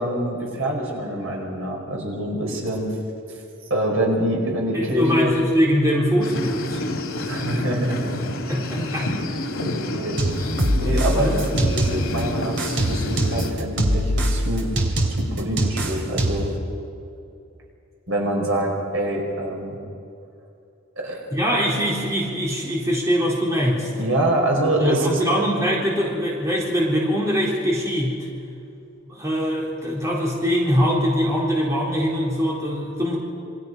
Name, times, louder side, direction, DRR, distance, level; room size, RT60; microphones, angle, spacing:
voice 1, 0.0-2.9 3.7-5.3 7.2-8.3 9.9-10.2 10.8-14.7 15.2-16.5 18.1-19.8 21.0-21.2 24.0-25.5, right 1 dB, 80° right, -1 dB, 5.5 m, -25 dB
voice 2, 4.7-6.8 8.5-9.1 11.2-11.4 21.3-23.9 24.8-28.3 29.0-33.2, equal, 15° right, -4 dB, 3.9 m, -22 dB
sound 1, 6.2-13.5, left 1 dB, 85° left, 2.6 m, -29 dB
sound 2, 10.2-12.2 12.6-16.6, right 1 dB, 60° right, 3.0 m, -23 dB
27.5 x 24.5 x 5.6 m, 2.6 s
head